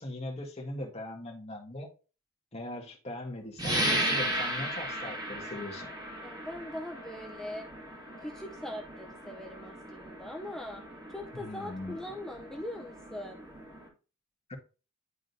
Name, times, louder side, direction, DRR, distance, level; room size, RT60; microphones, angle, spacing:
voice 1, 0.0-1.9 2.5-5.9 11.3-12.0 14.5-14.6, left 1 dB, 30° left, 1.6 m, -40 dB
sound 1, 3.6-13.9, right 1 dB, 20° right, 2.1 m, -36 dB
voice 2, 6.2-7.7 8.2-13.4, left 1 dB, ahead, 0.6 m, -41 dB
11.0 x 3.8 x 2.6 m
head